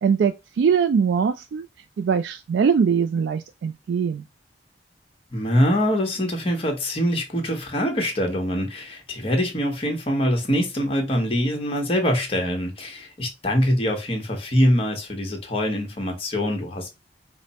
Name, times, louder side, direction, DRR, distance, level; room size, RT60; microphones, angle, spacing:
voice 1, 0.0-1.7 2.0-4.2, right 6 dB, 70° right, 0.3 m, -22 dB
voice 2, 5.3-16.9, equal, 35° left, 1.2 m, -24 dB
5.0 x 2.1 x 4.1 m
head